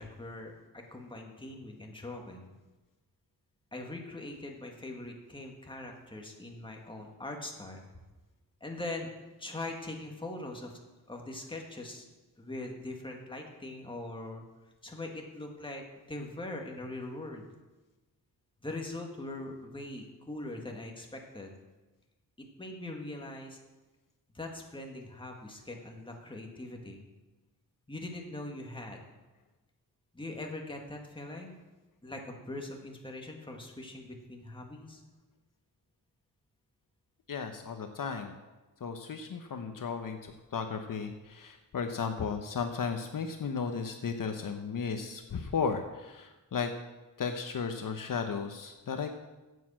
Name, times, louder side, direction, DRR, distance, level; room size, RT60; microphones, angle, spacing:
voice 1, 0.0-2.5 3.7-7.9 8.6-9.1 9.4-10.8 11.1-12.1 12.4-14.4 14.8-17.4 18.6-21.5 22.6-23.6 24.3-27.0 27.9-29.0 30.1-31.6 32.0-35.0, left 2 dB, 15° left, 1 dB, 1.9 m, -41 dB
voice 2, 37.3-38.4 38.8-46.7 47.2-49.2, left 5 dB, 60° left, 6 dB, 0.9 m, -35 dB
9.2 x 8.3 x 7.5 m, 1.1 s
wide cardioid pair, 110°, 37 cm